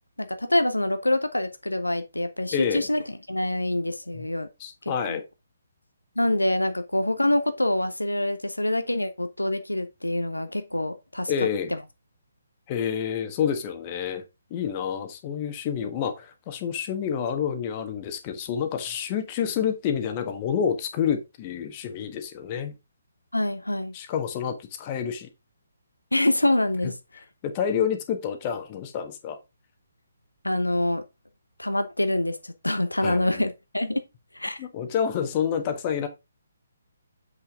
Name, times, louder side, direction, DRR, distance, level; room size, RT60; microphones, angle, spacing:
voice 1, 0.2-3.0 3.3-4.5 4.8-5.2 6.2-11.3 23.3-23.9 26.1-26.9 30.4-31.0 31.6-34.0 34.3-34.6, left 1 dB, 85° left, 0.8 m, -25 dB
voice 2, 2.5-2.9 4.1-4.3 4.6-5.2 11.3-11.7 12.7-14.2 14.5-22.7 23.9-25.3 26.8-26.9 27.4-29.4 33.0-33.4 34.6-36.1, left 8 dB, 30° left, 1.5 m, -28 dB
7.9 x 5.9 x 3.6 m
figure-of-eight pair, 135°, 0 cm